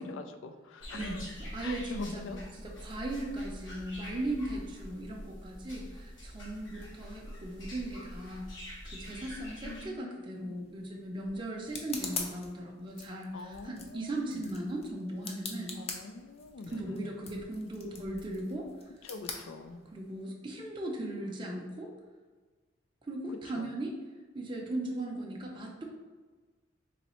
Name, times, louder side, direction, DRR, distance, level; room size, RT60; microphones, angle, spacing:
voice 1, 0.0-1.3 1.6-2.4 9.6-10.6 13.3-14.4 15.7-17.1 19.0-19.8 23.5-23.7, left 3 dB, 90° left, 7 dB, 0.4 m, -44 dB
sound 1, 0.8-9.9, equal, 70° left, 1.2 m, -45 dB
voice 2, 0.9-8.5 8.8-15.8 16.7-18.7 19.9-21.9 23.0-23.9 24.3-25.8, right 1 dB, 25° right, -1 dB, 0.5 m, -38 dB
sound 2, 10.4-20.2, left 4 dB, 35° left, 0.5 m, -44 dB
3.9 x 3.1 x 3.0 m, 1.4 s
head